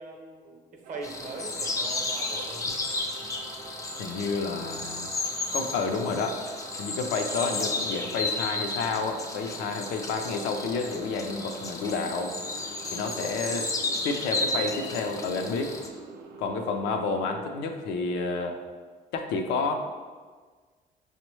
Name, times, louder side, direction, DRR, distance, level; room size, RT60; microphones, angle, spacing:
voice 1, 0.0-2.7, right 3 dB, 50° right, 2 dB, 0.7 m, -40 dB
sound 1, 0.8-17.5, right 4 dB, 80° right, 0.4 m, -46 dB
sound 2, 1.0-15.9, left 2 dB, 20° left, 0.4 m, -33 dB
voice 2, 4.0-5.1 5.5-6.4 6.8-12.3 12.9-13.7 14.0-15.7 16.4-18.6 19.1-19.7, left 4 dB, 85° left, 4 dB, 0.5 m, -30 dB
5.2 x 2.1 x 3.0 m, 1.5 s
cardioid pair, 110°, 17 cm